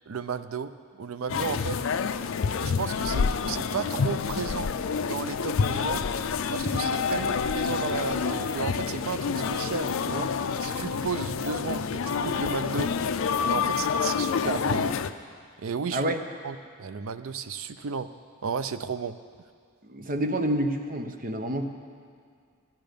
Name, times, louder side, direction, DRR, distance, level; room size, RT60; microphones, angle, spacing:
voice 1, 0.1-1.8 2.6-4.7 5.1-6.0 6.5-10.3 10.6-12.9 13.5-15.0 15.6-16.1 16.4-18.1 18.4-19.2, right 5 dB, 80° right, 12 dB, 0.5 m, -33 dB
sound 1, 1.3-15.1, left 6 dB, 70° left, 0.4 m, -28 dB
voice 2, 19.8-21.6, right 1 dB, 40° right, 6 dB, 0.9 m, -28 dB
12.0 x 11.5 x 5.2 m, 2.1 s
head